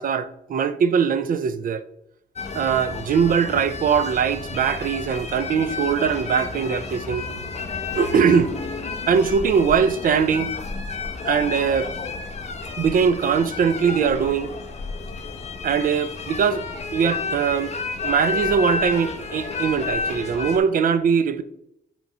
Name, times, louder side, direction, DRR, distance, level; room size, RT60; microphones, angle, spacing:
voice 1, 0.0-1.8 2.5-7.3 7.9-8.5 9.1-10.5 11.3-11.9 12.8-14.6 15.6-16.6 16.9-17.7 18.0-21.4, right 6 dB, 50° right, 0.4 m, -21 dB
sound 1, 2.4-20.6, left 4 dB, 35° left, 0.7 m, -31 dB
7.8 x 3.0 x 5.4 m
wide cardioid pair, 165°, 18 cm